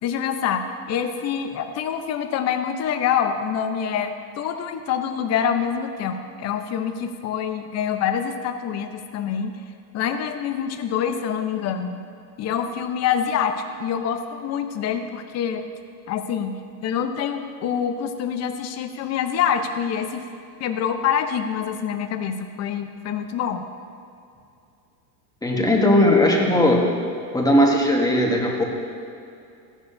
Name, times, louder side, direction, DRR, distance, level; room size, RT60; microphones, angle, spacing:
voice 1, 0.0-9.6 9.9-12.0 12.4-15.7 16.1-20.2 20.6-23.6, left 8 dB, 30° left, 7 dB, 0.8 m, -26 dB
voice 2, 25.4-26.9 27.3-28.6, left 1 dB, 5° left, -1 dB, 1.3 m, -18 dB
14.5 x 11.0 x 2.7 m, 2.5 s
supercardioid pair, 125°, 50 cm